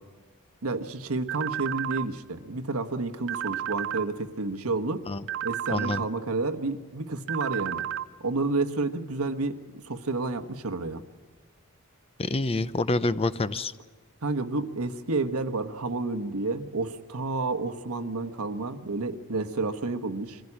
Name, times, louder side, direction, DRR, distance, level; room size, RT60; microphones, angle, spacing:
voice 1, 0.6-5.1 5.4-7.9 8.2-11.0 14.2-20.4, right 3 dB, 90° right, 9 dB, 1.2 m, -30 dB
sound 1, 1.3-2.1 3.3-4.1 5.3-6.1 7.3-8.1, right 11 dB, 60° right, 0.7 m, -32 dB
voice 2, 5.7-6.0 12.2-13.7, left 2 dB, 25° left, 15 dB, 0.6 m, -27 dB
24.0 x 15.5 x 9.8 m, 1.4 s
head